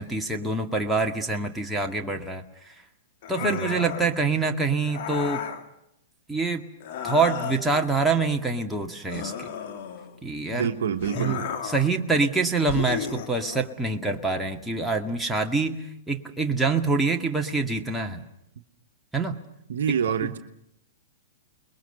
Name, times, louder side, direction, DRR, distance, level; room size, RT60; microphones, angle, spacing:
voice 1, 0.0-2.7 3.3-5.4 6.3-6.7 7.0-9.5 10.2-10.7 11.2-18.2 19.1-19.4 20.2-20.3, right 3 dB, 5° right, 1 dB, 1.9 m, -26 dB
sound 1, 3.2-4.1 4.9-5.6 6.8-7.8 9.1-10.2 11.0-11.9 12.7-13.7, left 8 dB, 55° left, 2.4 m, -34 dB
voice 2, 3.4-3.8 10.5-11.4 19.7-20.4, right 8 dB, 70° right, 7 dB, 1.2 m, -27 dB
29.0 x 21.5 x 6.8 m, 0.78 s
hypercardioid pair, 115°, 0 cm